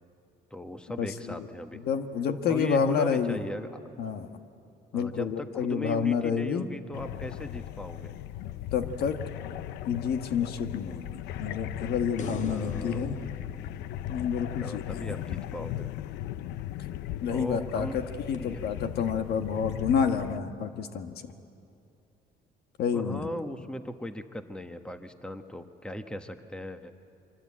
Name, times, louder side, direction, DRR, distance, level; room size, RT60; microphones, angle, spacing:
voice 1, 0.5-1.8 2.5-3.8 4.9-8.1 12.5-13.0 14.6-15.9 17.3-18.0 18.4-18.7 22.9-26.9, equal, 5° left, 8 dB, 1.2 m, -38 dB
voice 2, 1.8-3.4 4.0-4.3 4.9-6.6 8.7-9.2 9.8-13.2 14.1-15.0 17.2-18.0 18.3-21.1 22.8-23.3, left 7 dB, 70° left, 8 dB, 1.5 m, -29 dB
sound 1, 6.9-20.4, left 12 dB, 85° left, 0.6 m, -38 dB
sound 2, 12.2-15.5 18.3-18.4, left 5 dB, 45° left, 1.8 m, -43 dB
24.5 x 24.5 x 8.7 m, 2.7 s
cardioid pair, 110°, 17 cm